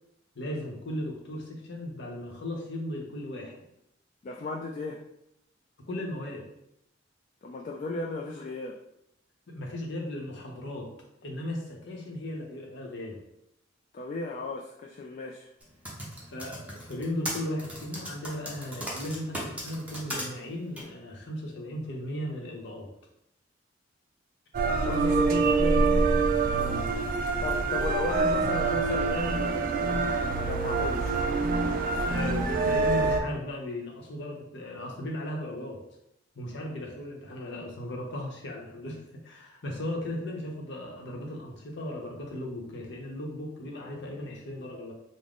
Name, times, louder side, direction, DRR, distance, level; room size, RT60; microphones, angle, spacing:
voice 1, 0.3-3.5 5.9-6.5 9.5-10.9 11.2-13.2 16.3-22.9 26.5-26.9 32.1-35.8 36.3-44.9, left 1 dB, 65° left, 0 dB, 0.8 m, -36 dB
voice 2, 4.2-5.0 7.4-8.8 13.9-15.5 24.8-25.9 27.4-31.3, left 3 dB, 40° left, 0 dB, 0.3 m, -35 dB
Typing, 15.6-20.2 20.8-20.9, equal, 5° right, 0.8 m, -36 dB
sound 1, 24.5-33.2, right 4 dB, 45° right, 0.3 m, -26 dB
3.6 x 2.0 x 3.5 m, 0.79 s
head